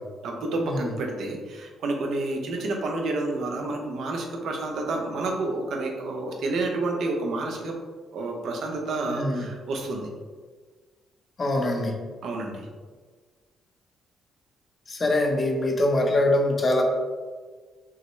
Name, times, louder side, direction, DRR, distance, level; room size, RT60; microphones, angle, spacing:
voice 1, 0.2-7.7 8.1-10.1 12.2-12.7, right 2 dB, 70° right, 2 dB, 0.7 m, -29 dB
voice 2, 9.0-9.4 11.4-11.9 14.9-16.8, left 1 dB, 35° left, 1 dB, 0.7 m, -23 dB
5.7 x 2.1 x 3.1 m, 1.5 s
cardioid pair, 90°, 0 cm